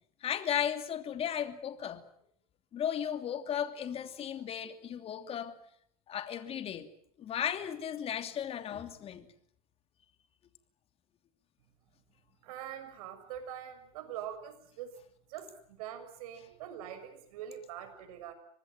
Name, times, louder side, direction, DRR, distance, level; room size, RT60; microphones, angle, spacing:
voice 1, 0.2-2.0 2.7-5.6 6.1-6.9 7.2-9.3, left 9 dB, 30° left, 2.9 m, -35 dB
voice 2, 12.4-14.9 15.3-18.3, right 10 dB, 70° right, 6.6 m, -43 dB
25.0 x 19.5 x 9.2 m
supercardioid pair, 130°, 19 cm